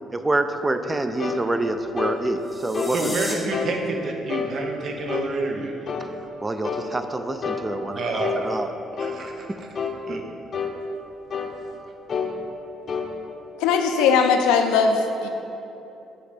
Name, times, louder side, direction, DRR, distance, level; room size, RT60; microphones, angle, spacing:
voice 1, 0.1-3.2 6.4-8.7, right 2 dB, 20° right, 9 dB, 0.4 m, -26 dB
sound 1, 1.2-1.4 2.0-2.2 2.7-3.0 3.5-3.8 4.3-4.5 5.1-5.3 5.9-6.1 6.6-6.9 7.4-7.7 8.2-8.4 9.0-9.2 9.8-10.0 10.5-10.8 11.3-11.6 12.1-12.3 12.9-13.1, left 6 dB, 50° left, 0.6 m, -28 dB
sound 2, 2.4-3.3, left 1 dB, ahead, 1.1 m, -34 dB
voice 2, 2.8-5.7 7.9-8.6 9.0-9.5 10.1-10.2, right 2 dB, 55° right, 2 dB, 0.8 m, -28 dB
voice 3, 13.6-15.3, left 5 dB, 90° left, 5 dB, 0.4 m, -19 dB
7.6 x 3.5 x 5.0 m, 2.9 s
supercardioid pair, 75°, 0 cm